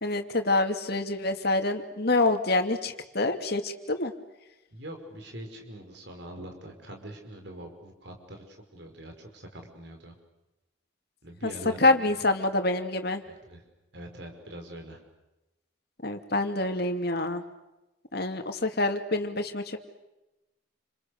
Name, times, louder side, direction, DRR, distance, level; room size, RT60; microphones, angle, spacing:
voice 1, 0.0-4.1 11.4-11.5 11.8-13.2 16.0-17.4 18.1-19.8, left 2 dB, 50° left, 6 dB, 2.6 m, -26 dB
voice 2, 4.7-10.2 11.2-12.0 13.3-13.6 13.9-15.0, right 1 dB, 60° right, 3 dB, 5.3 m, -43 dB
29.5 x 27.5 x 6.8 m, 0.99 s
head